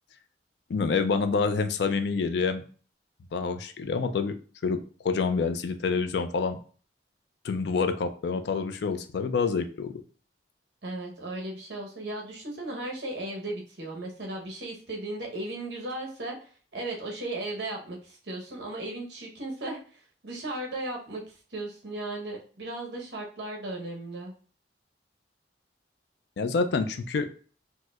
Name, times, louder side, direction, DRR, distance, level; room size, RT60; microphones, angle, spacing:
voice 1, 0.7-2.6 3.3-4.3 4.6-4.8 5.0-6.6 7.4-9.9 26.4-27.3, left 4 dB, 65° left, 9 dB, 0.4 m, -27 dB
voice 2, 10.8-24.3, right 2 dB, 65° right, 0 dB, 0.9 m, -36 dB
4.3 x 2.1 x 2.3 m, 0.41 s
head